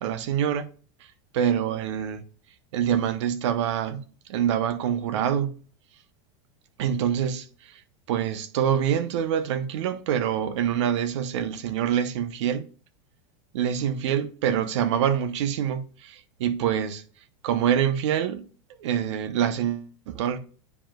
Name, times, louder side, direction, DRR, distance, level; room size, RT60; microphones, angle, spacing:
voice 1, 0.0-0.7 1.3-2.2 2.7-4.0 4.3-5.5 6.8-7.8 8.1-12.6 13.5-17.0 17.4-18.5 18.8-20.4, right 9 dB, 75° right, 1.0 m, -25 dB
9.6 x 5.1 x 2.4 m
supercardioid pair, 150°, 15 cm